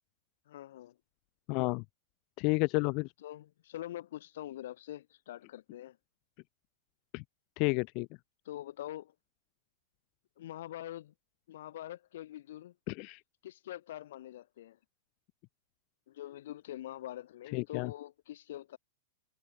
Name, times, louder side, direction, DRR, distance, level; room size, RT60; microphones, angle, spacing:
voice 1, 0.5-1.0 3.2-6.0 8.4-9.1 10.4-11.1 11.5-12.7 13.4-14.8 16.1-18.8, left 13 dB, 65° left, 7.8 m, -44 dB
voice 2, 1.5-1.8 2.4-3.1 7.1-7.2 7.6-8.1 12.9-13.2 17.5-17.9, left 32 dB, 45° left, 0.5 m, -31 dB
figure-of-eight pair, 100°, 0 cm